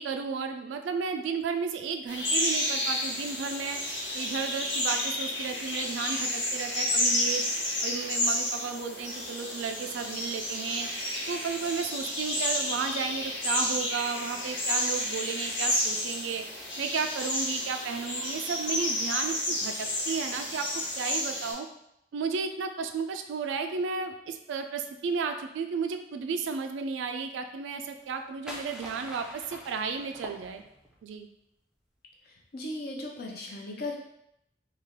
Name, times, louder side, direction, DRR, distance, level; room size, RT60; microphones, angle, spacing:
voice 1, 0.0-7.4 7.8-16.4 16.8-21.7 22.1-30.6 31.0-31.3, right 5 dB, 85° right, 6 dB, 0.3 m, -33 dB
sound 1, 2.1-21.5, left 1 dB, 75° left, 1.4 m, -31 dB
sound 2, 27.9-31.0, equal, 5° right, 0.4 m, -44 dB
voice 2, 32.3-34.0, left 2 dB, 55° left, -1 dB, 0.6 m, -37 dB
3.2 x 2.3 x 3.5 m, 0.79 s
head